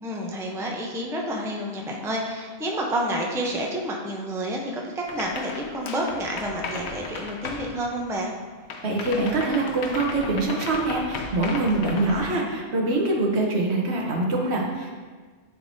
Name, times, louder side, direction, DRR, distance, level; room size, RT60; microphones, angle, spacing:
voice 1, 0.0-8.3, right 1 dB, 5° right, -1 dB, 0.5 m, -29 dB
sound 1, 5.1-8.4 8.7-12.3, left 4 dB, 80° left, 0.9 m, -36 dB
voice 2, 8.8-15.0, right 2 dB, 75° right, 0 dB, 1.2 m, -24 dB
10.5 x 3.5 x 2.7 m, 1.5 s
omnidirectional pair, 1.1 m